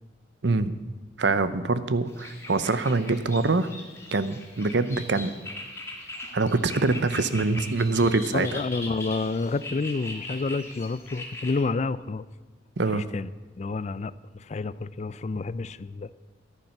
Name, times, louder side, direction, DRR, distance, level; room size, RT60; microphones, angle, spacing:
voice 1, 1.2-3.7 4.1-5.3 6.3-8.6 12.8-13.1, right 3 dB, 65° right, 13 dB, 0.7 m, -24 dB
sound 1, 2.1-11.6, left 2 dB, 15° left, 2.0 m, -40 dB
voice 2, 8.3-12.2 12.9-13.3 13.6-16.1, left 3 dB, 35° left, 17 dB, 0.4 m, -29 dB
13.5 x 10.5 x 5.9 m, 1.3 s
head